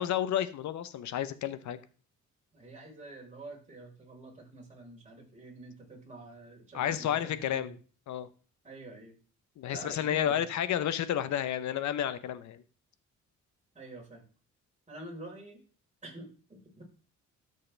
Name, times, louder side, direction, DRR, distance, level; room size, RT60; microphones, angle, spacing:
voice 1, 0.0-1.8 6.7-7.8 8.1-8.3 9.6-12.6, left 10 dB, 70° left, 14 dB, 1.0 m, -31 dB
voice 2, 2.5-7.7 8.6-9.2 9.7-10.5 13.7-14.2 14.9-15.6 16.0-16.8, right 2 dB, 25° right, -1 dB, 4.7 m, -47 dB
13.0 x 6.6 x 3.4 m, 0.39 s
cardioid pair, 90°, 30 cm